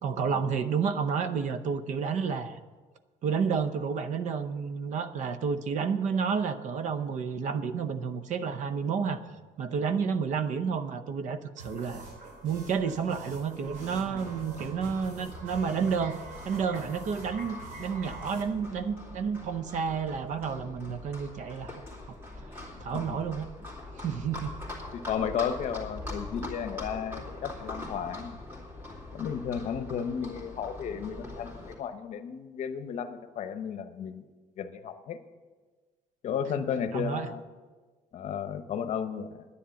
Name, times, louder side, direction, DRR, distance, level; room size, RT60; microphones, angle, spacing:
voice 1, 0.0-2.6 3.2-9.2 9.6-12.0 12.4-16.2 16.4-22.2 22.8-23.5 24.0-24.5 36.9-37.3, right 6 dB, 60° right, 11 dB, 0.7 m, -30 dB
sound 1, 11.6-18.4, right 2 dB, 80° right, 3.1 m, -44 dB
Livestock farm animals working animals, 13.6-31.7, left 2 dB, 15° right, 2.5 m, -43 dB
voice 2, 22.7-23.2 24.9-28.4 29.1-34.3 34.6-35.2 36.2-37.4 38.1-39.5, left 7 dB, 55° left, 9 dB, 0.8 m, -34 dB
10.0 x 9.9 x 7.0 m, 1.4 s
cardioid pair, 175°, 14 cm